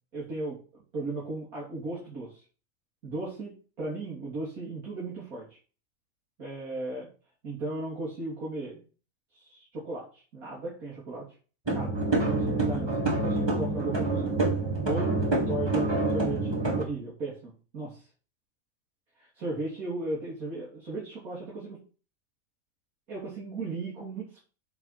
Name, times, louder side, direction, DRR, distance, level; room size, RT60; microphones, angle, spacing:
voice 1, 0.1-2.4 3.0-5.6 6.4-7.1 7.4-8.8 9.3-11.3 11.7-14.4 14.8-15.2 15.5-18.0 19.2-21.8 23.1-24.4, right 2 dB, 75° right, -6 dB, 3.5 m, -36 dB
sound 1, 11.7-16.8, right 2 dB, 20° right, 1.7 m, -27 dB
8.7 x 4.5 x 5.8 m, 0.37 s
omnidirectional pair, 1.5 m